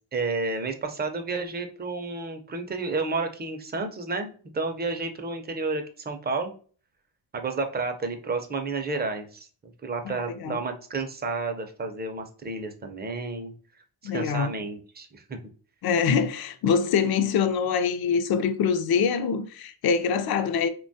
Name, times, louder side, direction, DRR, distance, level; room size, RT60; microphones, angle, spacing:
voice 1, 0.1-6.5 7.3-9.5 9.8-13.5 14.0-15.4, right 3 dB, 25° right, 0.4 m, -31 dB
voice 2, 10.0-10.6 14.0-14.5 15.8-20.7, left 6 dB, 60° left, 0.5 m, -24 dB
3.0 x 2.2 x 2.6 m
wide cardioid pair, 130°, 42 cm